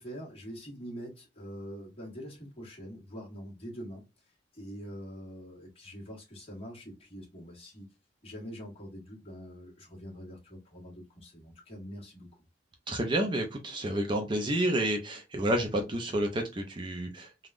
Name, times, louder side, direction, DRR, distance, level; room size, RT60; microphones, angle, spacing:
voice 1, 0.0-4.0 4.5-7.9 8.2-12.4, equal, 30° left, 1.4 m, -44 dB
voice 2, 12.9-17.5, right 1 dB, 25° right, 0.5 m, -30 dB
3.5 x 2.3 x 2.4 m
head